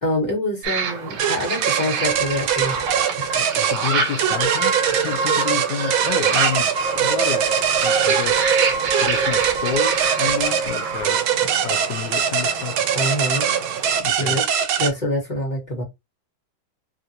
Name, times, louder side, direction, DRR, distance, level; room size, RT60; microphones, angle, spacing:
voice 1, 0.0-2.8 3.2-3.3 12.9-13.6 14.2-14.4 14.8-15.8, left 1 dB, 25° left, 1.1 m, -25 dB
sound 1, 0.6-14.0, right 5 dB, 70° right, 1.4 m, -28 dB
sound 2, 1.2-14.9, right 8 dB, 90° right, 1.5 m, -23 dB
sound 3, 2.0-3.4 3.9-4.0 4.3-5.5 5.8-11.0, right 4 dB, 50° right, 0.5 m, -26 dB
voice 2, 3.4-7.5 7.8-8.5 8.9-12.8 14.0-14.4, left 8 dB, 75° left, 1.1 m, -30 dB
3.4 x 2.5 x 2.7 m
omnidirectional pair, 2.2 m